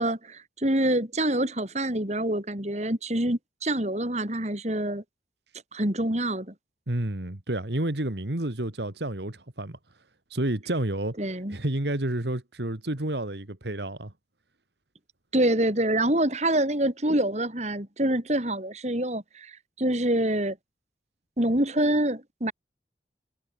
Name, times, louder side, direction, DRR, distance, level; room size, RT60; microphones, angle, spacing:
voice 1, 0.0-5.0 5.7-6.5 11.2-11.6 15.3-20.6 21.4-22.5, right 1 dB, 40° right, 3.4 m, -26 dB
voice 2, 6.9-9.8 10.3-11.1 11.5-14.1, right 1 dB, 70° right, 2.1 m, -30 dB
head